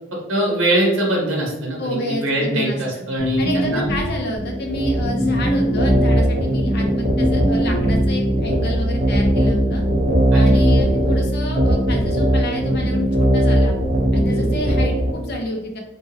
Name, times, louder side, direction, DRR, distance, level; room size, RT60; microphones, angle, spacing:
voice 1, 0.1-3.8 10.3-10.4, right 1 dB, 65° right, -2 dB, 1.0 m, -22 dB
voice 2, 1.8-2.8 3.4-9.8 10.3-13.7 14.1-15.8, equal, 50° left, 2 dB, 0.6 m, -29 dB
sound 1, 3.2-4.3 5.2-6.3 7.1-8.2 9.1-9.7 10.4-11.0, equal, 5° left, 1.1 m, -24 dB
sound 2, 4.4-15.1, equal, 40° right, 0.5 m, -19 dB
2.7 x 2.6 x 2.9 m, 0.96 s
head